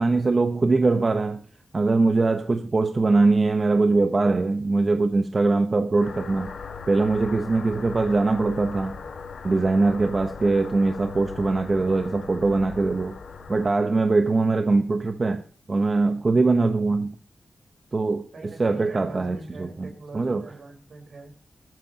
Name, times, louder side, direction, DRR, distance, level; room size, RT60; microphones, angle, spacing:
voice 1, 0.0-1.4 1.7-6.5 6.9-9.0 9.4-13.2 13.5-17.2 17.9-20.4, right 3 dB, 30° right, 0.9 m, -22 dB
sound 1, 6.0-13.7, left 5 dB, 75° left, 2.1 m, -39 dB
voice 2, 18.3-21.4, right 3 dB, 60° right, 4.3 m, -42 dB
20.5 x 13.5 x 2.9 m
wide cardioid pair, 170°, 0 cm